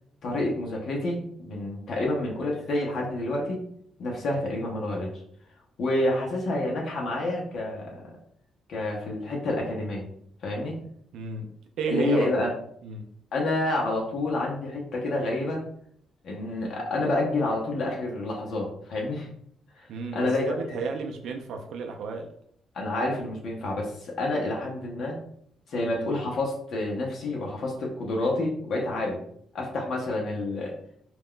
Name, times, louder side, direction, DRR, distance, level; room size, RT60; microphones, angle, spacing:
voice 1, 0.2-3.6 4.0-5.2 5.8-8.2 8.7-10.0 10.4-10.7 11.9-12.5 13.3-15.6 16.2-19.3 19.8-20.6 22.7-25.2 25.7-29.2 29.5-30.7, left 2 dB, 65° left, -2 dB, 0.7 m, -28 dB
voice 2, 11.1-11.5 11.8-12.3 12.8-13.1 19.9-22.3, right 5 dB, 75° right, 3 dB, 0.4 m, -32 dB
2.4 x 2.1 x 3.6 m, 0.66 s
cardioid pair, 90°, 0 cm